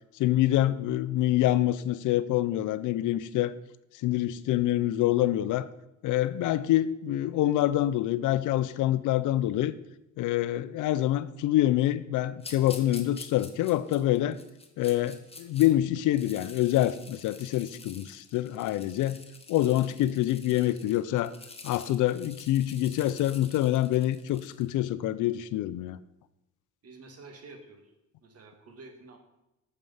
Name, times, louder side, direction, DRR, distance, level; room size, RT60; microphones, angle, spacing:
voice 1, 0.2-3.5 4.0-5.7 6.0-9.7 10.2-14.4 14.8-19.2 19.5-21.3 21.6-26.0, left 14 dB, 85° left, 15 dB, 0.5 m, -26 dB
sound 1, 12.4-15.7 16.0-24.7, left 3 dB, 20° left, 1.3 m, -48 dB
voice 2, 26.8-27.9 28.2-29.2, right 3 dB, 55° right, 4 dB, 2.0 m, -49 dB
9.1 x 6.7 x 5.5 m, 0.91 s
cardioid pair, 90°, 30 cm